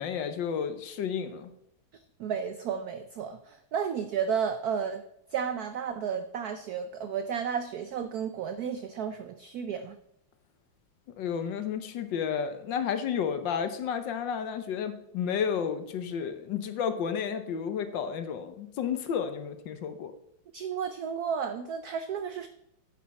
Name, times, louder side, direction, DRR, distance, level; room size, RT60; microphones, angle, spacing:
voice 1, 0.0-1.5 11.2-20.1, left 7 dB, 65° left, 10 dB, 1.4 m, -31 dB
voice 2, 2.2-5.0 5.3-9.9 20.5-22.5, right 7 dB, 85° right, 10 dB, 0.8 m, -32 dB
9.7 x 8.6 x 4.2 m, 0.79 s
omnidirectional pair, 2.3 m